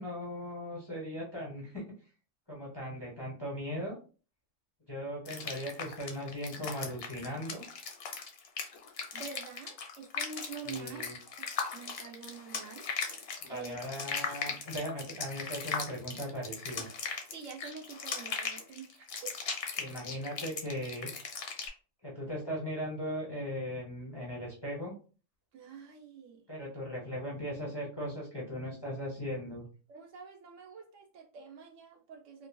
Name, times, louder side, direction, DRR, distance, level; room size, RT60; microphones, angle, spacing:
voice 1, 0.0-1.8 2.5-4.0 4.9-7.6 10.7-11.2 13.4-16.9 19.8-21.1 22.0-24.9 26.5-29.7, equal, 25° left, -4 dB, 0.6 m, -38 dB
sound 1, 5.3-21.7, left 5 dB, 60° left, 0.7 m, -38 dB
voice 2, 9.1-12.9 13.2-13.8 16.8-16.9 17.3-19.4 25.5-26.4 29.9-32.5, right 6 dB, 70° right, 1 dB, 1.0 m, -47 dB
2.9 x 2.5 x 2.2 m, 0.37 s
omnidirectional pair, 1.4 m